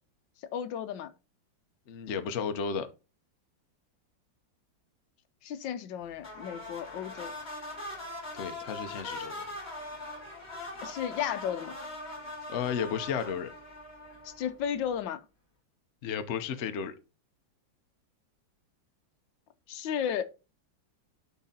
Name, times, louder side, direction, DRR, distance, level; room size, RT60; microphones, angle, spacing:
voice 1, 0.5-1.1 5.4-7.3 10.8-11.7 14.2-15.2 19.7-20.2, left 9 dB, 80° left, 1.3 m, -33 dB
voice 2, 1.9-2.9 8.3-9.5 12.5-13.5 16.0-16.9, left 6 dB, 55° left, 0.7 m, -33 dB
sound 1, 6.2-14.7, left 2 dB, 30° left, 2.8 m, -41 dB
12.0 x 4.6 x 2.8 m
omnidirectional pair, 2.1 m